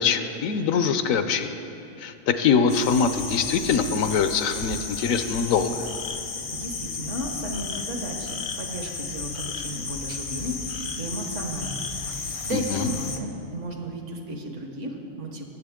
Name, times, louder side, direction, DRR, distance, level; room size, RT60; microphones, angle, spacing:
voice 1, 0.0-1.6 2.0-5.9 12.5-12.9, left 6 dB, 75° left, 9 dB, 1.0 m, -23 dB
sound 1, 2.7-13.2, left 4 dB, 50° left, 0.4 m, -33 dB
voice 2, 6.5-15.4, right 1 dB, 60° right, 2 dB, 1.5 m, -34 dB
19.5 x 7.7 x 3.6 m, 2.6 s
omnidirectional pair, 1.5 m